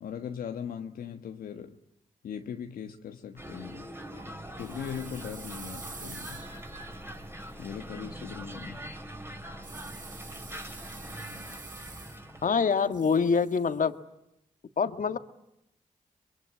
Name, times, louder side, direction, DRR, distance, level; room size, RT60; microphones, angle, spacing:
voice 1, 0.0-1.8 2.2-3.9 4.5-6.4 7.6-8.8, left 8 dB, 80° left, 5 dB, 1.4 m, -39 dB
sound 1, 3.4-12.6, right 1 dB, 15° right, 4.8 m, -42 dB
sound 2, 4.6-7.6 9.6-12.4 12.7-13.8, right 4 dB, 65° right, 6.9 m, -47 dB
voice 2, 12.4-13.9 14.8-15.2, left 5 dB, 60° left, 10 dB, 1.8 m, -25 dB
24.0 x 22.0 x 10.0 m, 0.83 s
supercardioid pair, 45°, 15 cm